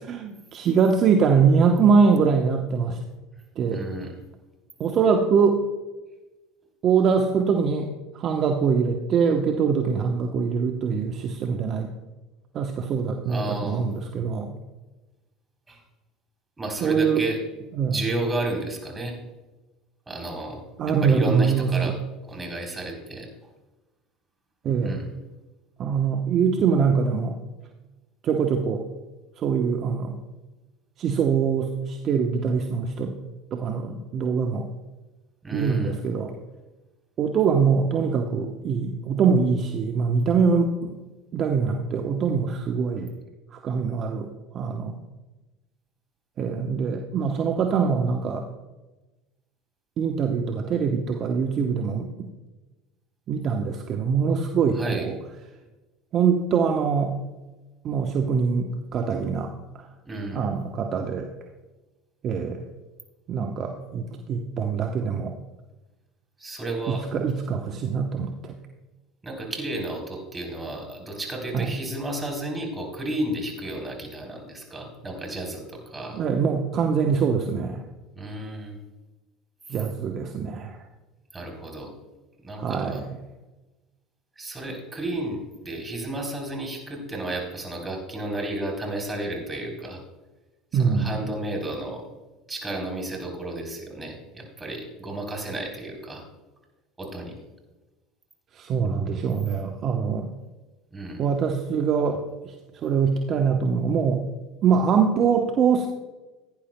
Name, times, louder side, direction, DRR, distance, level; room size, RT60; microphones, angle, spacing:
voice 1, 0.0-3.0 3.6-3.8 4.8-5.6 6.8-11.9 12.5-14.5 16.8-17.2 17.7-17.9 20.8-21.9 24.6-25.0 25.8-27.4 28.2-28.8 29.4-30.2 31.0-33.1 33.5-34.7 35.5-36.3 37.2-40.9 41.3-43.1 43.5-44.9 46.4-48.5 50.0-52.3 53.3-55.1 56.1-57.2 57.8-59.5 59.8-59.9 60.3-61.3 62.2-62.6 63.3-65.3 66.9-68.6 71.5-71.7 76.1-77.8 79.7-80.8 82.6-83.0 90.7-91.1 98.5-100.3 101.2-102.5 102.8-104.2 104.6-105.9, right 6 dB, 45° right, 3 dB, 0.9 m, -23 dB
voice 2, 3.7-4.1 13.3-13.9 15.7-15.8 16.6-17.4 17.8-19.2 20.1-20.6 21.0-21.9 22.2-23.3 24.8-25.1 35.4-36.0 54.7-55.1 60.1-60.5 66.4-67.0 69.2-76.2 78.1-78.8 79.7-79.8 81.3-81.9 82.4-83.0 84.4-90.0 90.7-92.0 92.5-96.2 97.0-97.3 100.9-101.2, right 1 dB, 20° right, 1 dB, 3.7 m, -32 dB
16.5 x 10.0 x 2.2 m, 1.1 s
hypercardioid pair, 80°, 0 cm